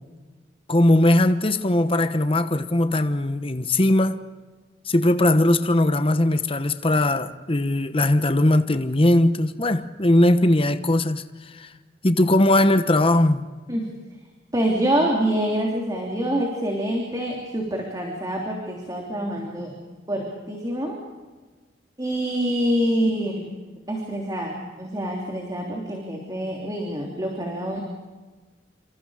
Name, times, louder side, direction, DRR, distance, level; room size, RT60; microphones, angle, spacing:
voice 1, 0.7-4.2 4.9-11.3 11.5-11.7 12.0-13.4, left 1 dB, 30° left, 1.1 m, -19 dB
voice 2, 14.5-19.7 20.1-21.0 22.0-23.5 23.9-27.8, right 1 dB, 20° right, 3.3 m, -26 dB
28.5 x 26.5 x 5.0 m
head